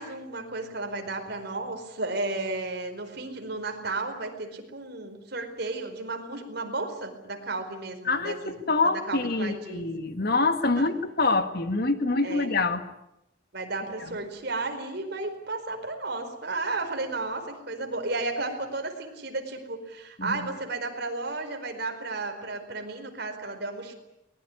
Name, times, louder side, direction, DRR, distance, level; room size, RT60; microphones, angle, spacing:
voice 1, 0.0-8.6 9.1-9.9 10.8-10.9 12.2-12.5 13.5-23.9, right 3 dB, 55° right, 6 dB, 4.6 m, -33 dB
voice 2, 8.0-12.8 14.0-14.1 20.2-20.5, left 3 dB, 55° left, 9 dB, 1.9 m, -26 dB
23.0 x 20.5 x 9.9 m, 0.84 s
head